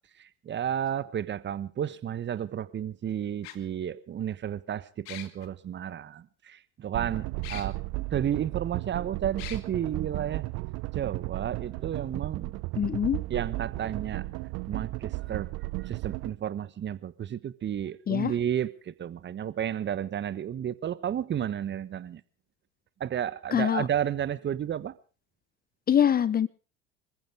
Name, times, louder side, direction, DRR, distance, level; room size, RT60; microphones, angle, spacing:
voice 1, 0.2-7.8 8.1-10.4 10.9-12.5 13.3-14.2 14.7-15.5 15.8-22.2 23.0-25.0, right 9 dB, 35° right, 16 dB, 1.3 m, -32 dB
sound 1, 0.9-1.0 2.4-2.5 3.4-3.6 5.0-5.5 7.4-7.7 8.3-8.4 9.4-9.6, left 13 dB, 65° left, 2.1 m, -41 dB
sound 2, 6.9-16.3, right 21 dB, 50° right, 0.8 m, -34 dB
voice 2, 12.8-13.2 18.1-18.3 23.5-23.8 25.9-26.5, left 9 dB, 25° left, 19 dB, 0.8 m, -24 dB
26.5 x 15.0 x 3.5 m, 0.36 s
hypercardioid pair, 75°, 33 cm